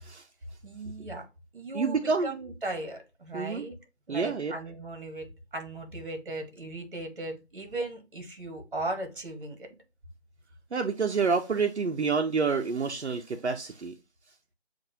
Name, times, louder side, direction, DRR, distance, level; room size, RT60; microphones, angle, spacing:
voice 1, 0.6-1.2 1.5-3.8 4.1-9.7, right 2 dB, 50° right, 1.5 m, -37 dB
voice 2, 1.7-2.4 3.3-3.7 4.1-4.5 10.7-13.9, right 5 dB, 80° right, 0.7 m, -28 dB
7.5 x 2.6 x 2.8 m
figure-of-eight pair, 165°, 33 cm